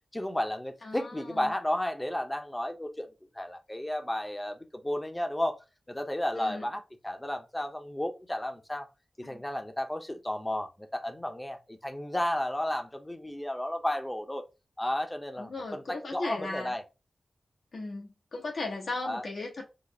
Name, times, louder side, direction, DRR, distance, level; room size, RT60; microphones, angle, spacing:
voice 1, 0.1-3.1 3.3-5.6 5.9-8.9 9.3-14.4 14.8-16.8 19.0-19.2, left 1 dB, 15° left, 0.7 m, -33 dB
voice 2, 0.8-1.5 6.4-6.6 9.2-9.4 15.4-16.7 17.7-19.6, left 2 dB, 75° left, 1.2 m, -37 dB
4.0 x 2.0 x 3.2 m
cardioid pair, 45°, 0 cm